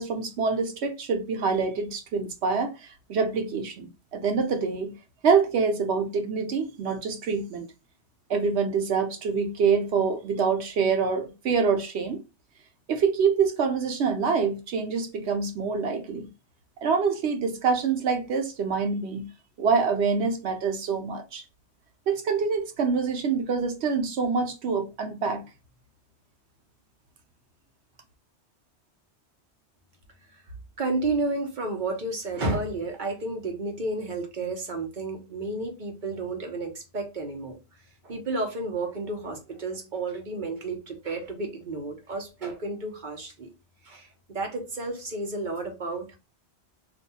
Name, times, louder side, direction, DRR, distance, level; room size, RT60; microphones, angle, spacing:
voice 1, 0.0-4.9 5.2-7.7 8.3-12.2 12.9-16.3 16.8-19.3 19.6-21.4 22.1-25.4, right 5 dB, 75° right, 0.9 m, -26 dB
voice 2, 30.8-37.6 38.0-43.5 43.8-46.2, right 2 dB, 50° right, 0.9 m, -31 dB
2.6 x 2.3 x 4.0 m
omnidirectional pair, 1.1 m